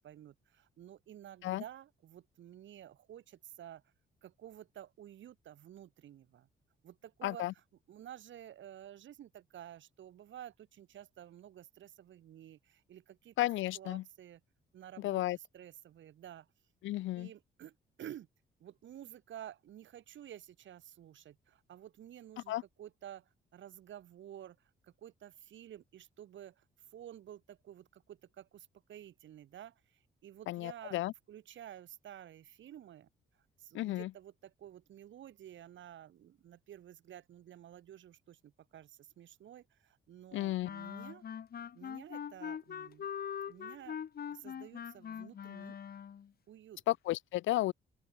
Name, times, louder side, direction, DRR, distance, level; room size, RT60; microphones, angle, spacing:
voice 1, 0.0-3.8 4.2-6.5 6.8-7.4 7.9-13.3 13.7-14.4 14.7-16.5 17.1-18.3 18.6-24.6 24.8-26.6 26.9-31.0 31.3-33.1 33.6-41.2 41.7-43.1 43.5-44.0 44.3-45.8 46.5-46.8, right 11 dB, 70° right, 6.9 m, -52 dB
voice 2, 7.2-7.5 13.4-14.0 15.0-15.4 16.8-17.3 22.5-22.6 30.5-31.1 33.7-34.1 40.3-40.7 46.9-47.7, left 16 dB, 80° left, 0.6 m, -33 dB
Clarinet - G natural minor, 40.6-46.3, left 8 dB, 50° left, 1.8 m, -42 dB
open air
cardioid pair, 90°, 20 cm